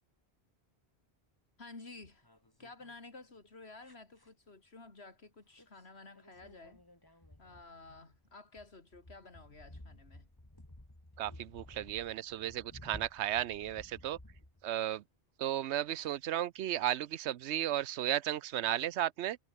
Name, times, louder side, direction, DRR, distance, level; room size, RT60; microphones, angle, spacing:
voice 1, 1.6-2.3 2.6-6.8 7.4-10.3, left 3 dB, 70° left, 3.3 m, -52 dB
sound 1, 2.0-3.0 3.8-4.3 5.6-5.8 6.1-15.0 15.9-16.1, left 1 dB, 20° left, 2.8 m, -55 dB
voice 2, 11.2-14.2 14.6-15.0 15.4-19.4, right 12 dB, 90° right, 0.9 m, -34 dB
omnidirectional pair, 1.1 m